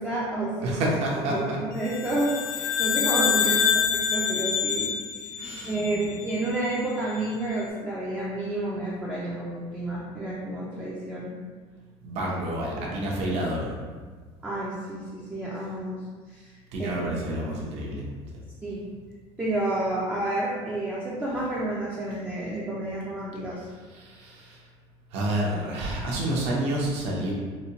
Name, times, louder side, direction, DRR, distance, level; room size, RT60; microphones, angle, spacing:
voice 1, 0.0-0.8 1.3-4.9 5.2-5.3 5.6-11.3 14.4-16.0 16.3-16.5 16.8-17.0 18.6-18.8 19.4-23.7, right 2 dB, 10° right, -7 dB, 0.4 m, -30 dB
voice 2, 0.6-1.6 3.4-3.6 5.4-5.8 12.0-13.7 16.7-18.0 23.9-24.7 25.1-27.3, right 1 dB, 60° right, -3 dB, 0.8 m, -29 dB
sound 1, 1.9-6.4, left 7 dB, 75° left, 0.4 m, -26 dB
4.0 x 2.2 x 2.8 m, 1.5 s
cardioid pair, 175°, 12 cm